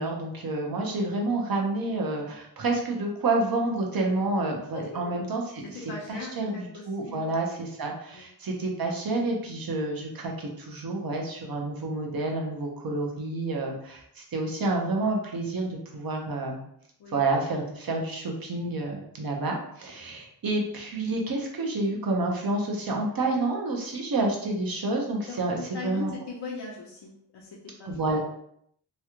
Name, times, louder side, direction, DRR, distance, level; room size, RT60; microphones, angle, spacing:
voice 1, 0.0-16.6 17.1-26.1 27.9-28.2, right 2 dB, 55° right, 1 dB, 0.9 m, -29 dB
voice 2, 4.7-5.0 5.7-7.3 8.1-8.3 17.0-17.2 25.3-28.2, left 4 dB, 70° left, -3 dB, 0.7 m, -40 dB
3.1 x 2.4 x 2.9 m, 0.70 s
cardioid pair, 60°, 42 cm